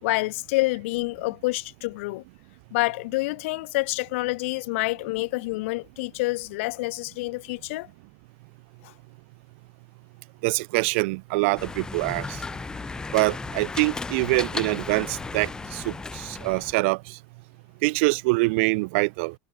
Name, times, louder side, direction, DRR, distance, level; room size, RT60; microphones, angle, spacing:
voice 1, 0.0-2.2 2.7-7.9, left 22 dB, 65° left, 2.4 m, -27 dB
voice 2, 10.4-12.4 13.1-17.2 17.8-19.3, right 27 dB, 60° right, 0.8 m, -25 dB
sound 1, 11.6-16.7, left 4 dB, 10° left, 4.8 m, -35 dB
supercardioid pair, 165°, 7 cm